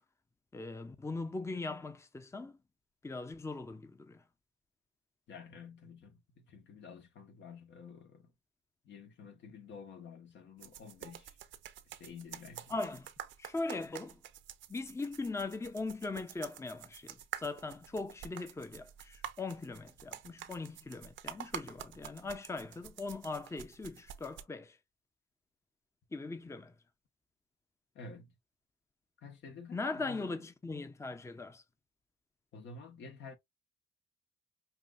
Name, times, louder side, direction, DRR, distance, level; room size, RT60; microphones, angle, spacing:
voice 1, 0.5-2.6 3.0-4.2 12.7-13.1 13.4-14.2 14.7-24.8 26.1-26.7 29.7-31.6, left 3 dB, 15° left, 0.7 m, -40 dB
voice 2, 5.3-8.3 8.8-11.4 11.8-12.8 27.9-28.3 29.2-30.4 32.5-33.4, left 5 dB, 65° left, 1.3 m, -50 dB
sound 1, 10.6-24.4, right 10 dB, 70° right, 0.8 m, -48 dB
5.6 x 2.7 x 2.5 m
cardioid pair, 90°, 20 cm